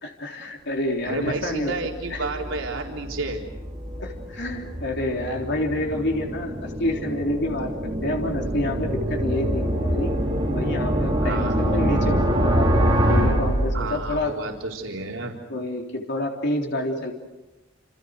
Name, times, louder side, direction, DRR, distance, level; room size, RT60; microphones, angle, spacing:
voice 1, 0.0-1.7 2.1-2.2 4.0-10.1 10.5-12.7 13.1-14.3 15.5-17.1, left 1 dB, 60° left, 1 dB, 3.6 m, -28 dB
voice 2, 1.0-3.4 11.2-11.6 13.7-15.4, right 3 dB, 75° right, 0 dB, 4.1 m, -31 dB
sound 1, 1.4-14.3, equal, 25° right, 6.2 m, -25 dB
29.0 x 28.5 x 6.6 m, 1.0 s
head